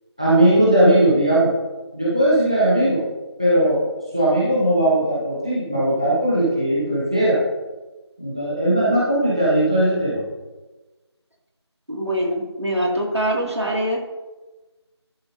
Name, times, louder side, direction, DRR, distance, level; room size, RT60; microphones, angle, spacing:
voice 1, 0.2-1.5 1.9-3.0 3.4-3.8 4.1-7.4 8.2-10.2, right 1 dB, 15° right, -9 dB, 0.9 m, -18 dB
voice 2, 11.9-14.0, right 1 dB, 75° right, -1 dB, 2.2 m, -23 dB
11.5 x 6.9 x 2.7 m, 1.2 s
figure-of-eight pair, 175°, 15 cm